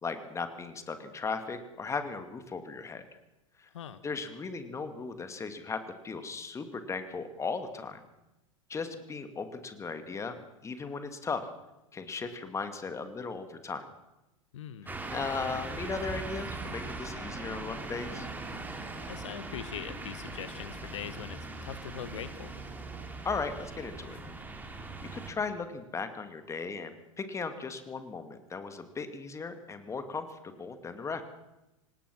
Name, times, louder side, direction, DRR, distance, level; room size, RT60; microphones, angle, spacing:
voice 1, 0.0-3.0 3.6-3.7 4.0-8.0 8.7-10.4 10.6-11.5 11.9-13.9 14.8-18.3 23.2-24.2 25.1-31.2, left 4 dB, 15° left, 9 dB, 2.3 m, -37 dB
voice 2, 14.5-14.9 19.1-22.6, left 10 dB, 65° left, 14 dB, 1.1 m, -42 dB
sound 1, 14.9-25.3, right 2 dB, 10° right, 3.6 m, -40 dB
26.0 x 18.5 x 6.3 m, 0.97 s
figure-of-eight pair, 90°, 17 cm